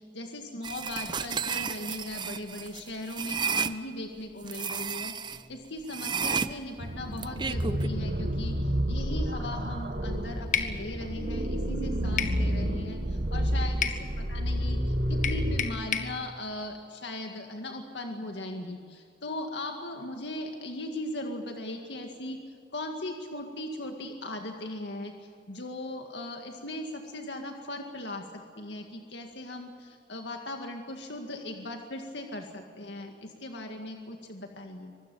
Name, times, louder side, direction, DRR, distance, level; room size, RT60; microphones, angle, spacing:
voice 1, 0.0-13.9 14.2-22.4 22.7-34.9, left 1 dB, 80° left, 3 dB, 2.0 m, -38 dB
sound 1, 0.6-3.7 4.5-5.4 5.9-7.9, right 6 dB, 25° right, 0.6 m, -32 dB
sound 2, 6.8-15.6, equal, 55° right, 2.1 m, -30 dB
sound 3, 10.5-10.8 12.2-12.4 13.8-14.0 15.2-16.1, left 8 dB, 45° left, 1.4 m, -29 dB
24.5 x 20.5 x 7.0 m, 2.3 s
head